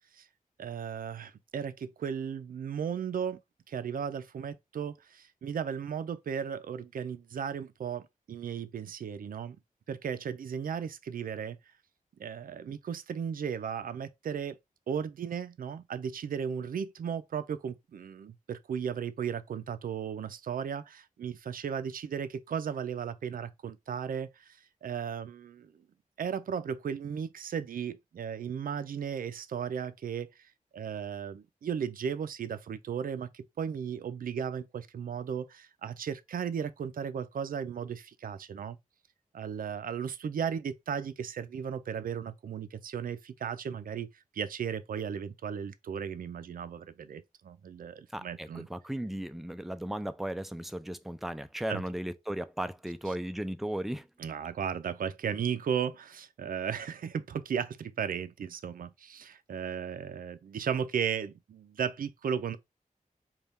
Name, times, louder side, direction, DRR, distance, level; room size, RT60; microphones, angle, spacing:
voice 1, 0.6-3.4 3.7-9.6 9.9-11.6 12.2-14.6 14.9-25.7 26.2-38.8 39.3-44.1 44.3-48.7 51.7-51.8 54.2-62.6, right 7 dB, 75° right, 0.4 m, -35 dB
voice 2, 48.1-54.1, right 1 dB, ahead, 0.3 m, -36 dB
4.1 x 2.3 x 3.5 m
wide cardioid pair, 130°, 15 cm